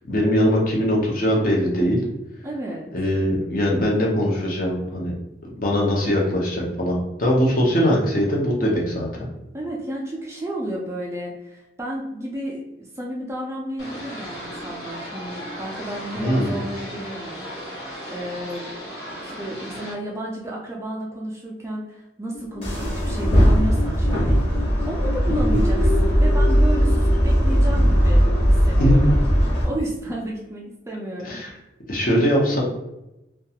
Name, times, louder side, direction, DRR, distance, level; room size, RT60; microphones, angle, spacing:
voice 1, 0.0-2.0 2.9-5.1 5.6-9.3 16.2-16.6 25.3-25.6 28.8-29.1 31.2-31.5 31.9-32.6, equal, 50° left, -3 dB, 0.7 m, -21 dB
voice 2, 2.4-2.9 9.5-18.7 19.2-24.4 24.9-29.2 29.4-31.4, right 1 dB, 15° right, -2 dB, 0.3 m, -32 dB
sound 1, 13.8-19.9, equal, 70° left, 1.0 m, -36 dB
sound 2, 22.3-29.4, left 3 dB, 90° left, 0.4 m, -35 dB
sound 3, 22.6-29.7, equal, 30° left, 0.9 m, -18 dB
2.4 x 2.2 x 2.8 m, 0.92 s
head